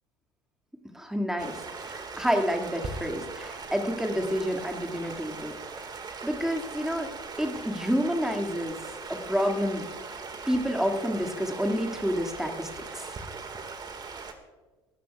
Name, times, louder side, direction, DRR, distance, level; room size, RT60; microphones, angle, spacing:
voice 1, 0.9-5.5 6.2-7.1 7.4-8.8 9.1-9.8 10.5-13.1, equal, 5° right, 3 dB, 2.2 m, -29 dB
Stream, 1.4-14.3, right 4 dB, 30° right, 1.9 m, -40 dB
25.5 x 13.5 x 2.4 m, 1.2 s
figure-of-eight pair, 65°, 15 cm